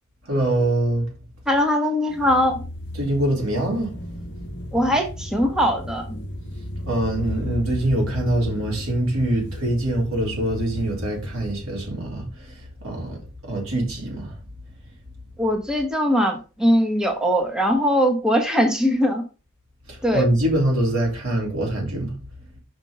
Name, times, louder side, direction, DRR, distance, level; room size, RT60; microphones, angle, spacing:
voice 1, 0.3-1.1 3.0-3.9 6.8-12.2 12.8-13.2 13.4-14.3 20.1-22.1, right 1 dB, 90° right, 3.8 m, -23 dB
voice 2, 1.5-2.6 4.7-6.2 15.4-19.2 20.0-20.3, equal, 5° right, 1.2 m, -21 dB
sound 1, 2.1-11.5, left 1 dB, 55° left, 1.0 m, -34 dB
6.2 x 5.3 x 5.3 m
head